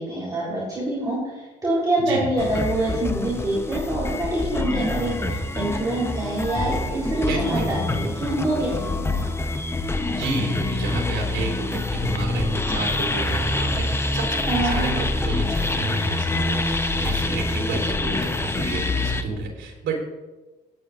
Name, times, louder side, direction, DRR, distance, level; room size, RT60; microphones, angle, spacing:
voice 1, 0.0-9.3 14.5-15.0, right 1 dB, 20° right, -6 dB, 3.6 m, -26 dB
voice 2, 2.0-2.3 7.1-7.9 10.2-20.0, right 3 dB, 75° right, -1 dB, 3.5 m, -30 dB
sound 1, 2.4-19.2, left 2 dB, 10° left, 0.7 m, -26 dB
18.5 x 9.4 x 2.5 m, 1.2 s
cardioid pair, 110°, 20 cm